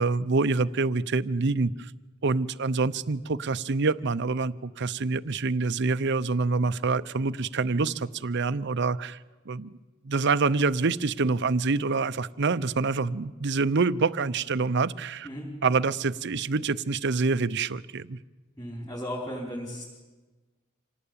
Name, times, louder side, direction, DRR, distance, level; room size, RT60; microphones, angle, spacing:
voice 1, 0.0-1.9 2.2-9.2 9.5-9.8 10.0-15.3 15.6-18.2, right 4 dB, 55° right, 16 dB, 0.7 m, -26 dB
voice 2, 18.6-19.8, equal, 15° left, -4 dB, 5.1 m, -35 dB
26.5 x 18.5 x 8.7 m, 1.2 s
head